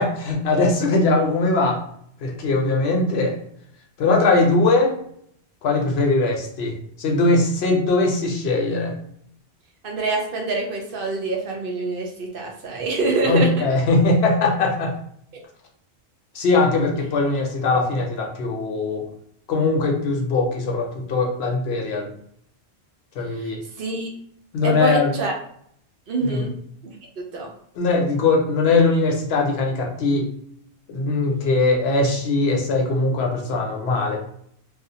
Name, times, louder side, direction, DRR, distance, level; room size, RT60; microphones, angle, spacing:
voice 1, 0.0-1.8 2.2-3.4 4.0-4.9 5.6-8.9 13.3-14.9 16.3-19.1 19.5-22.1 23.2-23.6 24.5-25.1 26.2-26.5 27.8-30.3 30.9-34.2, left 3 dB, 70° left, 1 dB, 0.8 m, -20 dB
voice 2, 9.8-13.7 23.3-24.1 24.6-25.3 26.1-26.5 26.8-27.5, right 3 dB, 60° right, 0 dB, 0.7 m, -26 dB
2.5 x 2.0 x 2.7 m, 0.67 s
omnidirectional pair, 1.1 m